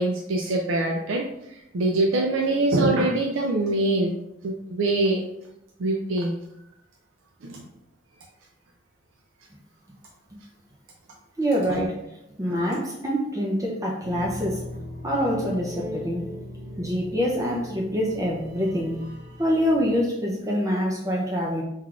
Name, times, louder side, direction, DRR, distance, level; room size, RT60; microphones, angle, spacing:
voice 1, 0.0-4.1 4.4-5.2 5.8-6.3 7.4-7.6 11.7-11.8 12.5-12.7, right 2 dB, 80° right, 1 dB, 0.4 m, -24 dB
voice 2, 11.4-12.0 12.4-14.6 15.0-16.3 16.8-19.0 19.4-21.6, equal, 15° right, -3 dB, 0.5 m, -25 dB
sound 1, 14.0-20.0, left 1 dB, 50° right, 1.0 m, -38 dB
4.4 x 3.8 x 2.4 m, 0.82 s
head